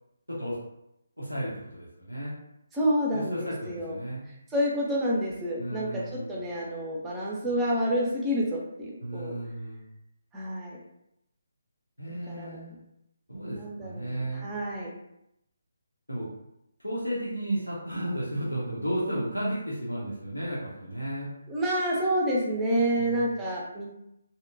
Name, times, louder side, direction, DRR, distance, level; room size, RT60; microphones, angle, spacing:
voice 1, 1.2-2.4 3.1-4.3 5.6-6.3 9.0-9.8 12.0-12.8 13.3-14.5 16.1-16.3 16.8-21.3 22.9-23.3, right 1 dB, 85° left, -7 dB, 0.8 m, -33 dB
voice 2, 2.7-4.0 4.3-9.4 10.3-10.8 12.3-12.6 13.5-14.9 21.5-23.9, equal, 10° right, -4 dB, 0.5 m, -29 dB
2.8 x 2.1 x 2.5 m, 0.81 s
figure-of-eight pair, 145°, 0 cm